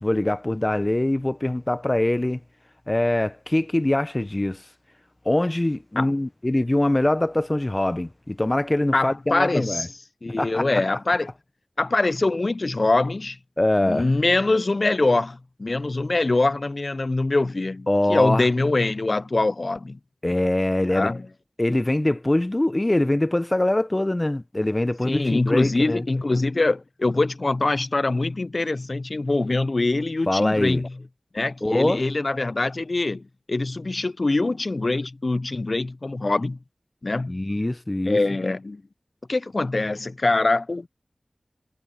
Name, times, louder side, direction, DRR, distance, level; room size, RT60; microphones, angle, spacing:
voice 1, 0.0-2.4 2.9-4.6 5.2-9.9 10.4-10.8 13.6-14.1 17.9-18.5 20.2-21.1 21.6-26.1 30.3-30.8 31.6-32.0 37.3-38.2, left 1 dB, 30° left, 0.7 m, -23 dB
voice 2, 8.9-9.9 10.2-11.3 11.8-13.4 13.8-20.0 20.9-21.2 25.0-30.9 31.3-36.6 37.0-37.4 38.1-38.8 39.3-40.9, left 2 dB, 55° left, 0.4 m, -23 dB
wide cardioid pair, 45°, 0 cm